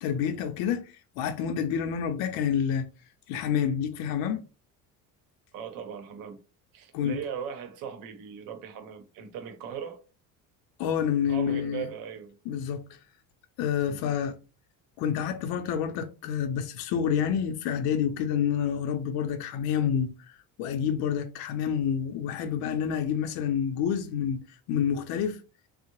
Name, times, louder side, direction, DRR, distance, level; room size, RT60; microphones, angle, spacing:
voice 1, 0.0-2.9 3.3-4.4 6.9-7.2 10.8-11.9 12.5-12.8 13.6-14.3 15.0-25.4, left 8 dB, 80° left, 0.5 m, -28 dB
voice 2, 5.5-6.4 6.7-10.0 11.3-12.6 13.8-14.0, right 8 dB, 70° right, 0.7 m, -39 dB
3.6 x 2.0 x 2.9 m
cardioid pair, 175°, 36 cm